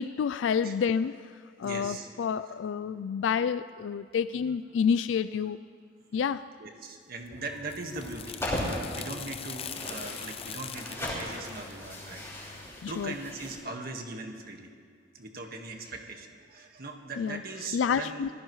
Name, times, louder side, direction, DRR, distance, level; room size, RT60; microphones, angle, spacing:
voice 1, 0.0-5.6 6.1-6.5 12.8-13.1 17.2-17.4 17.7-18.3, left 6 dB, 85° left, 13 dB, 0.3 m, -29 dB
voice 2, 1.6-2.1 6.6-14.7 15.1-18.3, right 3 dB, 55° right, 3 dB, 1.7 m, -40 dB
sound 1, 7.3-12.7, left 7 dB, 35° left, 0.6 m, -43 dB
sound 2, 7.9-13.5, left 1 dB, 15° left, 5.0 m, -38 dB
26.5 x 17.0 x 3.2 m, 2.1 s
head